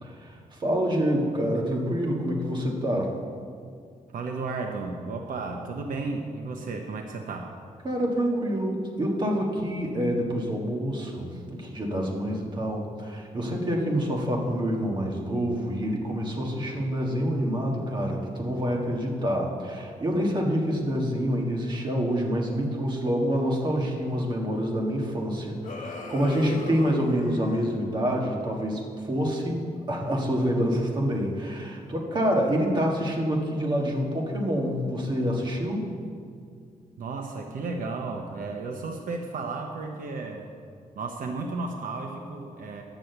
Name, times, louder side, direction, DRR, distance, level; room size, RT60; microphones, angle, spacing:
voice 1, 0.0-3.1 7.8-29.6 29.9-35.9, equal, 30° right, -1 dB, 1.6 m, -27 dB
voice 2, 4.1-7.5 37.0-40.5 41.0-42.8, right 3 dB, 75° right, 3 dB, 0.8 m, -33 dB
sound 1, 25.6-27.8, left 3 dB, 55° left, 1.4 m, -39 dB
9.9 x 6.3 x 7.9 m, 2.2 s
wide cardioid pair, 155°, 14 cm